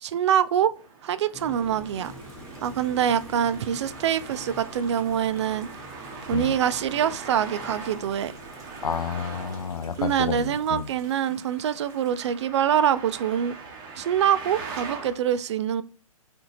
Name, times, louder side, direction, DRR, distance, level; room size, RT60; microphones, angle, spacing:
voice 1, 0.0-0.7 1.0-2.1 2.6-5.7 6.3-8.3 10.0-13.5 14.0-15.8, right 9 dB, 50° right, 0.4 m, -25 dB
Traffic noise roadway noise, 0.8-15.2, right 4 dB, 35° right, 1.0 m, -42 dB
sound 1, 1.3-11.1, right 1 dB, 5° left, 0.8 m, -45 dB
sound 2, 2.0-12.4, right 3 dB, 20° right, 1.2 m, -55 dB
voice 2, 8.8-10.9, left 7 dB, 80° left, 0.4 m, -30 dB
4.3 x 2.7 x 2.6 m
figure-of-eight pair, 125°, 18 cm